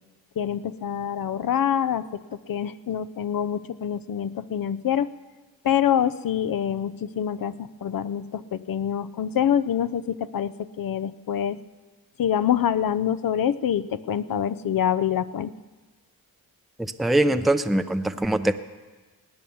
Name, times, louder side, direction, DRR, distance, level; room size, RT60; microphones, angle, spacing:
voice 1, 0.4-2.2 2.5-5.1 5.6-11.6 12.2-15.5, left 9 dB, 60° left, 15 dB, 0.7 m, -26 dB
voice 2, 16.8-18.5, right 1 dB, ahead, 9 dB, 0.6 m, -22 dB
18.5 x 9.4 x 7.1 m, 1.3 s
cardioid pair, 65°, 38 cm